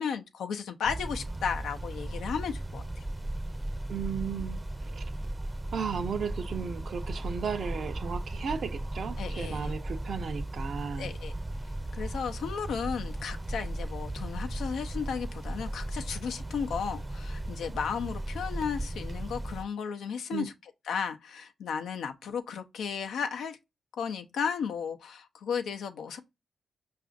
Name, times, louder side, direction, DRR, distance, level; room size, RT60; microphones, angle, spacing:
voice 1, 0.0-2.8 9.2-9.7 11.0-11.3 12.0-20.5 20.9-23.6 24.0-26.2, left 6 dB, 80° left, 0.5 m, -34 dB
sound 1, 0.8-19.6, right 1 dB, 20° right, 0.6 m, -36 dB
voice 2, 3.9-5.1 5.7-11.1 20.3-20.5, right 6 dB, 65° right, 0.6 m, -35 dB
4.8 x 2.4 x 2.5 m
supercardioid pair, 45°, 0 cm